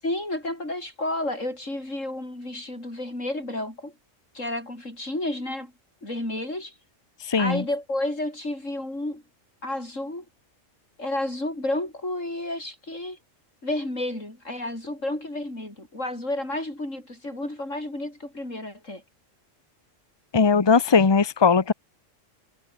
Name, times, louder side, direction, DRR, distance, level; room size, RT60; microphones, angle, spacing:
voice 1, 0.0-3.9 4.3-5.7 6.0-6.7 7.4-9.2 9.6-10.2 11.0-13.2 13.6-19.0, left 1 dB, 75° left, 8.2 m, -31 dB
voice 2, 7.3-7.6 20.3-21.7, left 5 dB, 20° left, 1.0 m, -19 dB
omnidirectional pair, 1.3 m